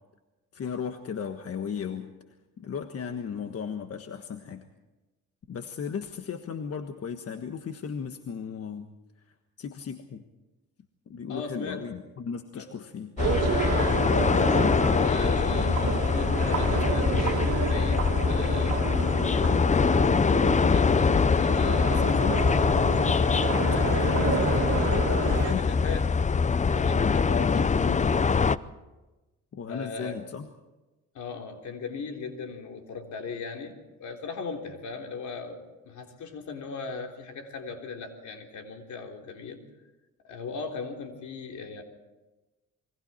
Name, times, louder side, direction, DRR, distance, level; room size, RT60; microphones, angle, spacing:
voice 1, 0.5-2.1 2.6-4.6 5.5-8.9 9.6-10.2 11.1-13.1 21.6-22.5 23.5-24.5 24.9-25.7 27.3-28.5 29.5-30.5, left 7 dB, 50° left, 6 dB, 1.5 m, -35 dB
voice 2, 11.3-11.9 12.5-12.8 14.2-19.6 20.7-22.1 23.7-24.6 25.2-26.2 26.7-27.6 29.7-30.2 31.1-33.7 34.0-39.6 40.2-41.8, left 4 dB, 70° left, 3 dB, 3.7 m, -38 dB
sound 1, 13.2-28.6, left 5 dB, 25° left, 0.6 m, -23 dB
sound 2, 13.2-25.5, right 7 dB, 55° right, 2.5 m, -31 dB
28.5 x 22.0 x 4.4 m, 1.1 s
cardioid pair, 90°, 30 cm